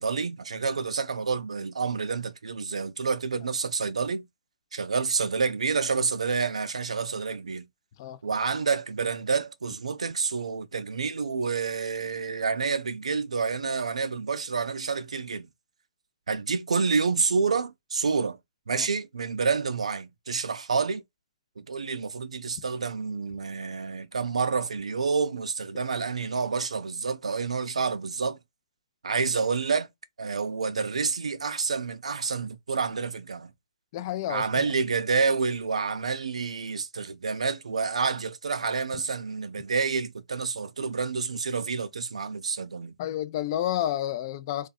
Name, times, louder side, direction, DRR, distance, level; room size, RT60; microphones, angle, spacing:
voice 1, 0.0-4.2 4.7-7.6 8.2-15.5 16.3-18.4 18.7-21.0 21.6-28.4 29.0-29.9 30.2-33.5 34.3-42.9, right 5 dB, 85° right, 0.4 m, -28 dB
voice 2, 33.9-34.7 43.0-44.7, left 12 dB, 40° left, 0.3 m, -30 dB
2.6 x 2.1 x 2.3 m
hypercardioid pair, 140°, 3 cm